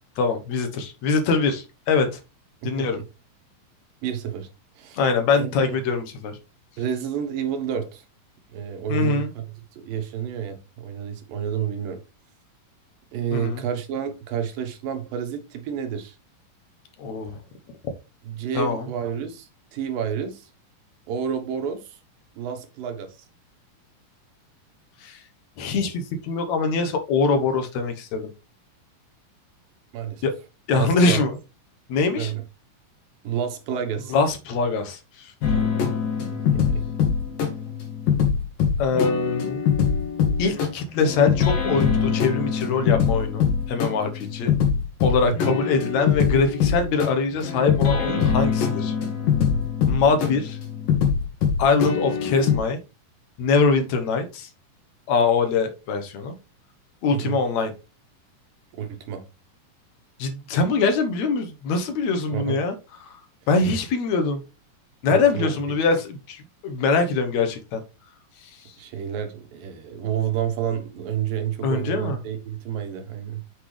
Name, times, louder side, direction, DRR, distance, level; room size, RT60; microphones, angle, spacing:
voice 1, 0.2-2.2 2.6-3.0 4.9-6.4 8.9-9.3 13.3-13.6 17.0-17.4 18.5-18.9 25.0-25.2 25.6-28.3 30.2-30.3 30.7-31.3 31.9-32.3 34.1-35.3 35.6-35.7 38.8-39.6 40.4-44.6 45.0-48.9 49.9-50.6 51.6-52.8 53.4-54.5 55.1-56.4 57.0-57.7 60.2-62.8 63.0-63.2 63.5-64.4 65.0-67.8 68.4-68.7 71.6-72.2, left 4 dB, 65° left, 2.2 m, -23 dB
voice 2, 2.6-3.0 4.0-4.5 4.8-5.0 5.4-5.5 6.8-8.1 8.5-9.4 9.7-12.0 13.1-16.2 18.2-20.5 21.1-22.0 22.4-23.2 29.9-30.2 30.8-31.2 32.2-32.4 33.2-34.1 36.3-36.8 45.2-45.6 57.1-57.4 58.7-59.2 62.3-62.6 65.0-65.5 68.8-73.4, right 8 dB, 80° right, 3.0 m, -29 dB
sound 1, 35.4-52.6, left 7 dB, 85° left, 3.6 m, -23 dB
8.0 x 5.8 x 3.3 m
omnidirectional pair, 4.0 m